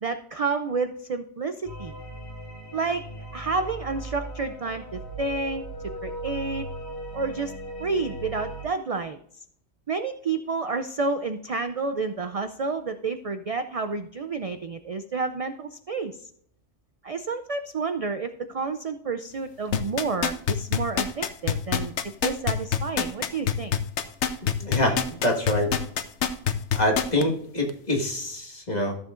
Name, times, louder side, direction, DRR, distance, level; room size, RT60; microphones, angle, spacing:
voice 1, 0.0-1.9 2.7-3.0 3.3-6.7 7.1-7.5 7.8-9.2 9.9-16.2 17.0-21.9 22.2-23.7, right 4 dB, 50° right, 9 dB, 0.4 m, -30 dB
sound 1, 1.6-8.7, right 1 dB, 15° left, 2.8 m, -38 dB
sound 2, 19.7-27.2 27.7-27.8, left 8 dB, 70° left, 1.0 m, -25 dB
voice 2, 24.6-25.7 26.7-29.0, left 1 dB, 35° left, 0 dB, 1.8 m, -25 dB
14.0 x 7.1 x 2.5 m, 0.65 s
omnidirectional pair, 1.2 m